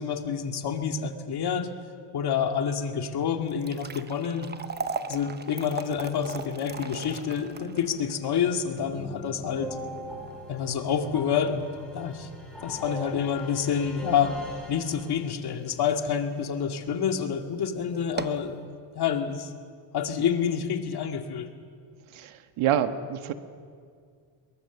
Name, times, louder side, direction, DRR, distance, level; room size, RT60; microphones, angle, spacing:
voice 1, 0.0-1.7 2.1-4.5 5.1-9.8 10.5-11.6 11.9-12.3 12.6-14.4 14.7-18.6 18.9-19.5 19.9-21.5, left 7 dB, 50° left, 4 dB, 2.2 m, -28 dB
sound 1, 3.4-15.7 16.1-16.2 16.9-17.1 17.4-17.5 18.0-18.5, right 5 dB, 20° right, 0.9 m, -39 dB
sound 2, 8.8-15.6, equal, ahead, 6.3 m, -41 dB
voice 2, 22.1-23.3, right 9 dB, 75° right, 8 dB, 1.5 m, -27 dB
24.0 x 22.0 x 7.2 m, 2.2 s
cardioid pair, 125°, 49 cm